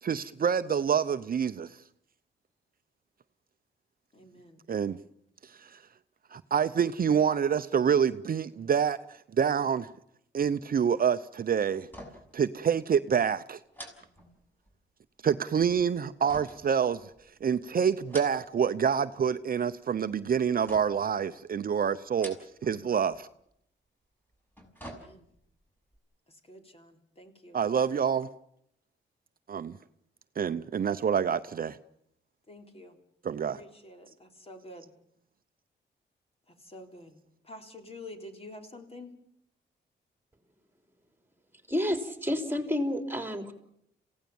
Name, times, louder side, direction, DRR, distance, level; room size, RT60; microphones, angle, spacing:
voice 1, 0.0-1.7 4.7-5.0 6.3-9.0 9.4-9.9 10.3-11.9 12.3-13.6 15.2-17.0 17.4-22.4 22.6-23.3 27.5-28.3 29.5-29.7 30.4-31.8 33.2-33.6, right 7 dB, 50° right, 0.8 m, -27 dB
voice 2, 4.1-4.6 25.0-25.2 26.5-27.6 32.5-33.0 33.6-34.9 36.7-37.2 37.5-39.1, left 1 dB, 30° left, 3.7 m, -48 dB
sound 1, 11.8-12.4 12.7-12.8 13.7-14.8 16.3-17.4 17.9-18.7 19.0-19.6 20.7-21.2 22.0-22.8 23.1-23.2 24.3-25.5 25.9-26.0, equal, 10° left, 6.3 m, -47 dB
voice 3, 41.7-43.5, left 1 dB, 10° right, 3.6 m, -30 dB
27.5 x 17.0 x 7.1 m
cardioid pair, 85°, 19 cm